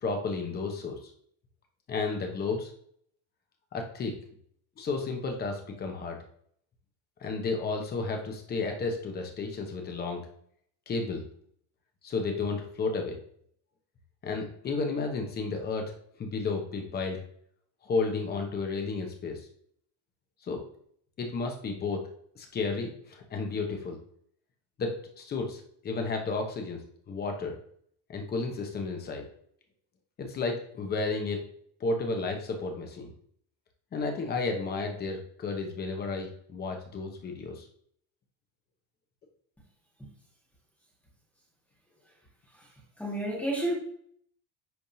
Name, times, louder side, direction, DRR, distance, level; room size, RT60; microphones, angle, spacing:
voice 1, 0.0-1.1 1.9-2.7 3.7-4.1 4.8-6.2 7.2-10.2 10.9-11.2 12.0-13.2 14.2-15.9 16.2-17.2 17.8-19.5 20.4-20.6 21.2-22.1 22.4-24.0 24.8-26.8 27.1-27.6 28.1-29.2 30.2-31.5 31.8-33.1 33.9-37.7, left 3 dB, 25° left, 3 dB, 0.8 m, -32 dB
voice 2, 43.0-43.7, right 1 dB, 5° left, -5 dB, 1.5 m, -30 dB
10.5 x 3.5 x 2.7 m, 0.64 s
cardioid pair, 175°, 42 cm